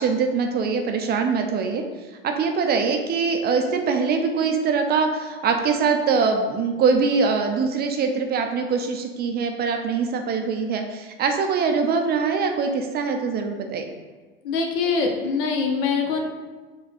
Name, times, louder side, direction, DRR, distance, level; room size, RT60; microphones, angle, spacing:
voice 1, 0.0-1.8 2.2-13.8, right 5 dB, 35° right, 4 dB, 0.5 m, -23 dB
voice 2, 14.4-16.2, left 5 dB, 65° left, 2 dB, 0.8 m, -23 dB
4.3 x 2.3 x 4.2 m, 1.3 s
hypercardioid pair, 85°, 30 cm